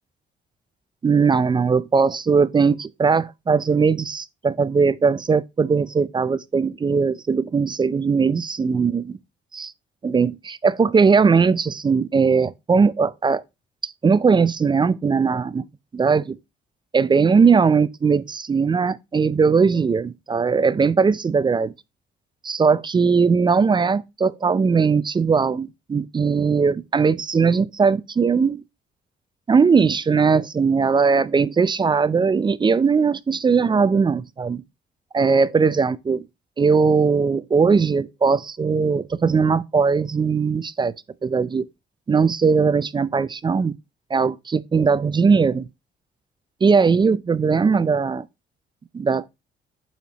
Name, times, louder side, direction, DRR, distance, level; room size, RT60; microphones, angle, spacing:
voice 1, 1.0-9.2 9.5-9.7 10.0-13.4 13.8-15.6 15.9-16.4 16.9-21.7 22.4-28.6 29.5-34.6 35.1-36.2 36.6-40.9 41.2-41.6 42.1-43.7 44.1-45.7 46.6-48.2 48.9-49.2, right 5 dB, 25° right, 0.3 m, -19 dB
8.2 x 4.4 x 2.9 m
cardioid pair, 90°, 20 cm